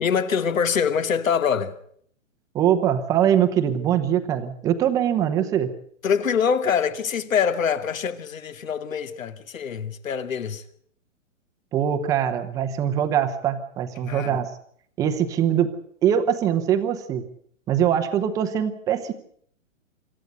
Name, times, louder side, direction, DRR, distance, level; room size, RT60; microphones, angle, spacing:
voice 1, 0.0-1.7 6.0-10.6 14.0-14.4, left 7 dB, 85° left, 2.5 m, -24 dB
voice 2, 2.5-5.7 11.7-14.5 15.0-15.7 16.0-17.2 17.7-19.1, right 9 dB, 10° right, 0.8 m, -22 dB
26.5 x 14.0 x 8.0 m
hypercardioid pair, 170°, 39 cm